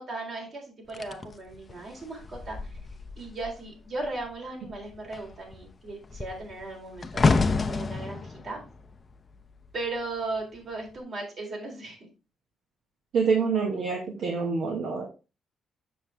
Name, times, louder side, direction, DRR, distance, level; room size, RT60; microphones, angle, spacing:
voice 1, 0.0-2.6 3.2-7.3 7.7-8.6 9.7-12.0, right 2 dB, 55° right, 0 dB, 3.8 m, -37 dB
sound 1, 0.9-3.7 4.0-4.3 4.7-10.0 10.7-11.0, left 3 dB, 30° left, 0.7 m, -29 dB
voice 2, 13.1-15.1, right 5 dB, 70° right, 0 dB, 1.6 m, -26 dB
7.3 x 6.5 x 3.4 m, 0.30 s
cardioid pair, 90°, 0 cm